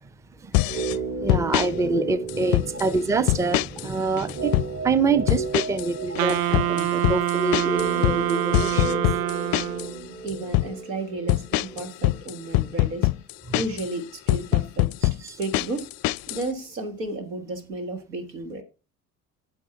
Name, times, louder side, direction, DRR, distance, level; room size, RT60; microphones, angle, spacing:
voice 1, 0.4-9.0 13.5-13.6 15.0-15.4, right 4 dB, 5° right, 0.5 m, -26 dB
sound 1, 0.5-1.0 1.3-1.7 2.3-2.9 3.3-3.9 4.2-4.7 5.3-5.9 6.1-9.9 10.3-10.7 11.3-13.9 14.3-16.4, left 19 dB, 50° left, 0.4 m, -23 dB
sound 2, 0.6-12.7 13.0-13.1, right 3 dB, 30° right, 2.0 m, -34 dB
Wind instrument woodwind instrument, 6.2-10.0, right 12 dB, 50° right, 0.6 m, -26 dB
voice 2, 10.2-13.1 13.5-14.9 15.4-15.9 16.3-18.6, right 2 dB, 85° right, 1.8 m, -33 dB
8.5 x 7.7 x 4.6 m
hypercardioid pair, 60°, 48 cm